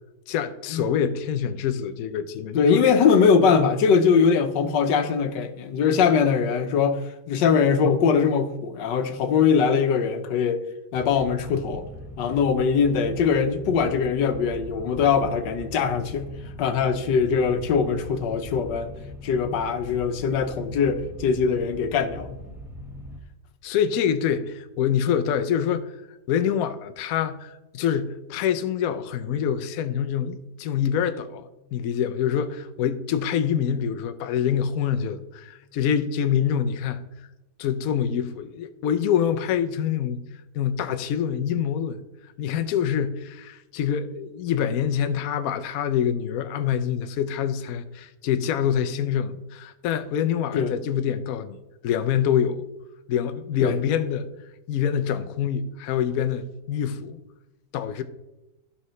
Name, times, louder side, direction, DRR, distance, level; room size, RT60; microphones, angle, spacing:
voice 1, 0.3-2.8 23.6-25.9 26.3-37.0 37.6-40.2 40.5-42.0 42.4-51.6 51.8-52.6 53.1-54.3 54.7-57.2 57.7-58.0, left 8 dB, 65° left, 0.9 m, -25 dB
voice 2, 2.5-7.0 7.3-10.6 10.9-11.9 12.2-16.3 16.6-18.9 19.2-22.3 50.5-50.7 53.6-53.8, left 6 dB, 85° left, 1.4 m, -21 dB
sound 1, 10.9-23.2, left 1 dB, ahead, 0.6 m, -40 dB
14.0 x 5.7 x 3.1 m
omnidirectional pair, 1.8 m